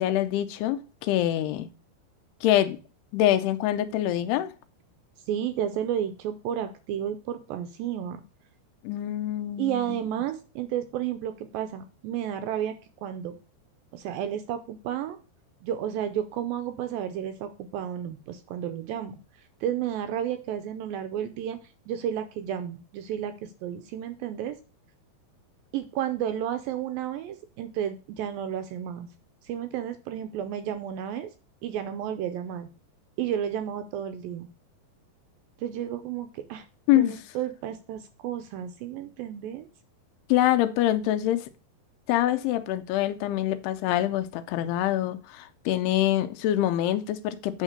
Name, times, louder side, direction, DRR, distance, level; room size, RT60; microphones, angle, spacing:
voice 1, 0.0-1.7 2.4-2.8 3.1-4.5 8.8-9.8 36.9-37.2 40.3-41.5 42.1-47.6, left 13 dB, 85° left, 2.7 m, -25 dB
voice 2, 5.3-8.2 9.6-12.7 13.0-13.4 13.9-15.2 15.6-19.2 19.6-21.6 21.9-24.6 25.7-29.1 29.4-31.3 31.6-32.7 33.2-34.5 35.6-36.7 36.9-39.7, right 10 dB, 85° right, 2.2 m, -32 dB
9.0 x 3.7 x 6.5 m
omnidirectional pair, 4.6 m